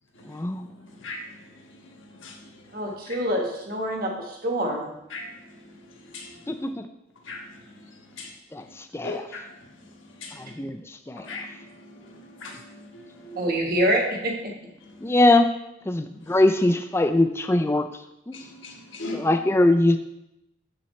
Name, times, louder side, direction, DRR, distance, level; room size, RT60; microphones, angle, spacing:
voice 1, 0.3-0.6 6.5-6.8 8.5-8.6 8.9-9.2 10.6-10.8 11.1-11.2 15.0-15.5 15.9-17.9 18.3-18.4 19.2-20.0, left 2 dB, 15° left, 8 dB, 0.3 m, -21 dB
voice 2, 2.7-4.9 13.4-14.5, equal, 50° right, 1 dB, 1.4 m, -26 dB
voice 3, 9.0-9.4 10.2-10.3 11.3-11.4 12.4-12.6 12.9-13.5 18.3-19.2, left 3 dB, 75° left, 1 dB, 1.4 m, -36 dB
7.6 x 7.0 x 3.1 m, 0.86 s
head